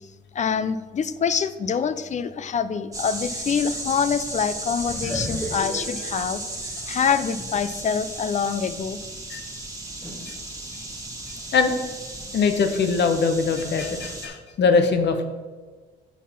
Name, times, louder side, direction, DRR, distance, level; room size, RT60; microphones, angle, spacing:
voice 1, 0.3-9.0, left 6 dB, 35° left, 13 dB, 0.5 m, -25 dB
sound 1, 2.9-14.3, right 1 dB, 15° right, 1.5 m, -35 dB
sound 2, 4.8-7.9 8.3-8.4 10.0-10.3, left 1 dB, 10° left, 1.3 m, -35 dB
voice 2, 12.3-15.2, left 5 dB, 60° left, 7 dB, 1.0 m, -22 dB
7.3 x 4.1 x 5.7 m, 1.4 s
cardioid pair, 90°, 20 cm